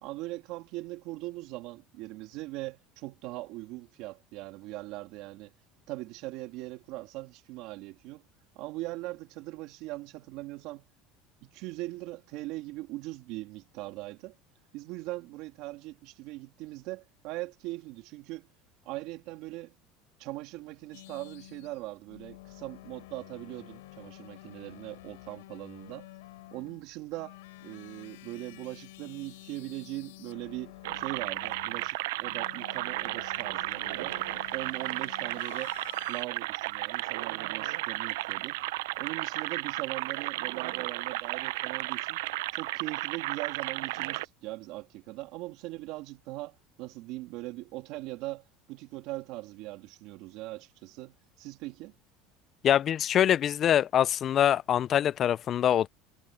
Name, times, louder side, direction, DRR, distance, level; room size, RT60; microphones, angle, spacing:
voice 1, 0.0-5.5 5.9-8.2 8.5-10.9 11.4-14.3 14.7-18.5 18.8-19.7 20.2-26.1 26.5-27.4 27.6-34.2 34.5-35.8 36.1-38.6 39.0-42.2 42.5-51.9, right 19 dB, 65° right, 2.4 m, -40 dB
sound 1, 20.9-36.2, left 19 dB, 90° left, 6.8 m, -50 dB
sound 2, 30.8-44.3, right 19 dB, 85° right, 0.5 m, -34 dB
voice 2, 52.6-55.9, left 10 dB, 40° left, 0.3 m, -24 dB
supercardioid pair, 115°, 0 cm